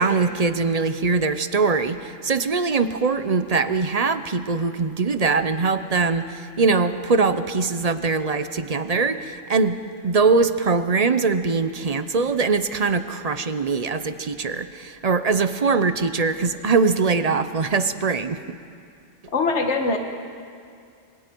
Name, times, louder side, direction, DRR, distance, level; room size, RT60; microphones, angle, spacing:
voice 1, 0.0-9.8 10.0-18.6, right 4 dB, 40° right, 11 dB, 0.7 m, -22 dB
voice 2, 19.3-20.0, left 3 dB, 65° left, 4 dB, 1.8 m, -22 dB
26.5 x 24.0 x 4.6 m, 2.3 s
omnidirectional pair, 1.3 m